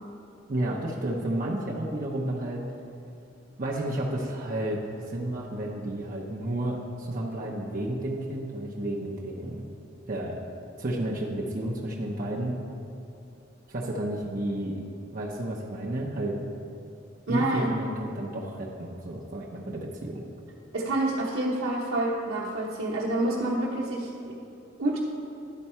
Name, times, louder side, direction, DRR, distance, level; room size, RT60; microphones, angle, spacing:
voice 1, 0.5-2.6 3.6-9.7 10.1-10.4 10.8-12.6 13.7-14.8 15.1-16.4 17.3-20.2, right 1 dB, 40° right, -3 dB, 0.7 m, -31 dB
voice 2, 17.3-17.7 20.7-24.3 24.8-25.0, right 1 dB, 80° right, -7 dB, 1.0 m, -28 dB
11.0 x 4.5 x 4.3 m, 2.7 s
head